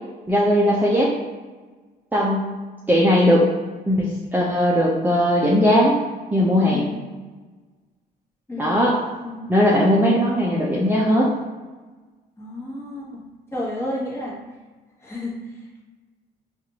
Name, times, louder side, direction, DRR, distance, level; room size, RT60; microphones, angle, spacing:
voice 1, 0.3-1.1 2.1-2.5 2.9-3.4 3.9-6.0 6.3-6.8 8.6-8.9 9.5-11.3, equal, 10° right, -5 dB, 0.6 m, -18 dB
voice 2, 8.5-8.8 9.1-9.5 12.4-13.2 13.5-14.4 15.0-15.8, left 1 dB, 15° left, -5 dB, 1.2 m, -31 dB
4.4 x 2.5 x 2.8 m, 1.3 s
cardioid pair, 90°, 18 cm